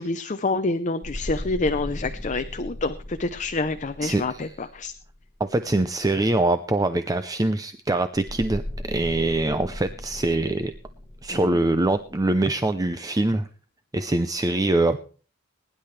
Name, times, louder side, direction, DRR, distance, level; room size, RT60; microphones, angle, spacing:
voice 1, 0.0-4.9 11.3-11.5, left 3 dB, 35° left, 9 dB, 0.6 m, -27 dB
sound 1, 1.0-5.4 8.1-12.3, left 1 dB, 10° left, 2.2 m, -37 dB
voice 2, 4.0-4.5 5.4-10.7 11.2-13.5 13.9-15.0, right 2 dB, 15° right, 10 dB, 0.5 m, -23 dB
21.5 x 10.5 x 3.3 m, 0.39 s
head